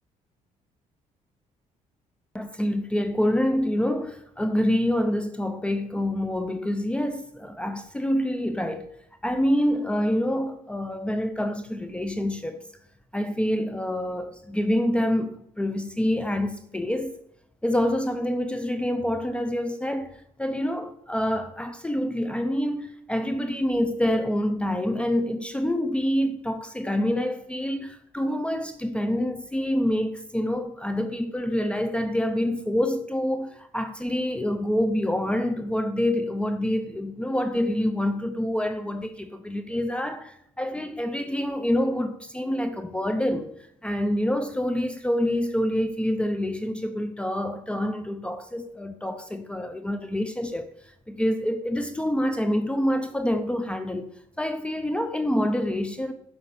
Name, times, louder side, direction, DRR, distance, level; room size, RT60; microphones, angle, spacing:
voice 1, 2.3-8.9 9.2-12.6 13.1-17.2 17.6-43.5 43.8-54.1 54.4-56.1, left 1 dB, 10° left, 0.6 m, -26 dB
9.6 x 5.7 x 6.7 m
cardioid pair, 125°, 13 cm